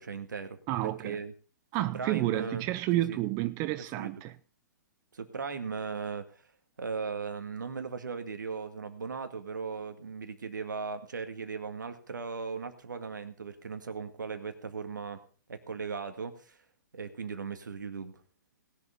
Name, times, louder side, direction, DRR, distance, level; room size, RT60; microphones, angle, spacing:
voice 1, 0.0-0.6 1.0-1.3 1.9-2.7 2.9-3.2 4.0-4.1 5.1-6.4 6.8-15.2 15.5-16.6 16.9-18.2, right 5 dB, 75° right, 2.0 m, -37 dB
voice 2, 0.7-1.2 1.7-4.3, right 16 dB, 30° right, 0.6 m, -30 dB
19.5 x 7.1 x 5.2 m
figure-of-eight pair, 115°, 10 cm